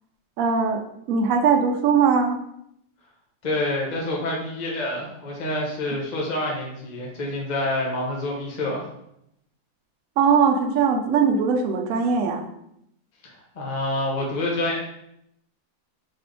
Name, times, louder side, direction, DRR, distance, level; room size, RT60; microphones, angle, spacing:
voice 1, 0.4-2.4 10.2-12.5, right 6 dB, 90° right, 4 dB, 0.7 m, -20 dB
voice 2, 3.4-8.9 13.5-14.8, left 1 dB, 40° left, -3 dB, 0.6 m, -27 dB
4.3 x 3.3 x 3.6 m, 0.77 s
omnidirectional pair, 2.1 m